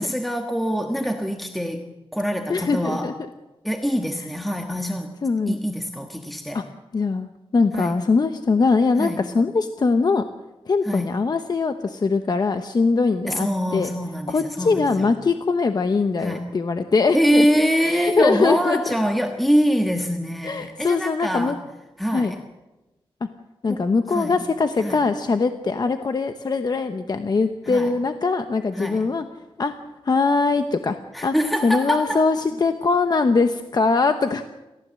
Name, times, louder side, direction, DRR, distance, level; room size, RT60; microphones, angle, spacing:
voice 1, 0.0-1.8 2.1-3.1 3.6-5.1 5.5-6.6 7.7-8.0 9.0-9.2 10.8-11.2 13.3-15.1 16.2-16.5 17.1-21.6 22.0-22.4 23.7-23.8 24.1-24.4 24.8-25.0 27.7-27.9 28.7-29.1 31.1-32.3, equal, ahead, 4 dB, 1.4 m, -24 dB
voice 2, 2.5-3.1 5.2-5.6 6.5-6.6 6.9-10.2 10.7-13.9 14.3-17.5 17.8-18.9 20.4-21.6 22.1-22.4 23.6-29.2 29.6-29.7 30.0-31.0 31.2-31.3 31.6-34.4, left 4 dB, 45° left, 8 dB, 0.9 m, -22 dB
28.5 x 15.0 x 7.6 m, 1.1 s
wide cardioid pair, 160°, 10 cm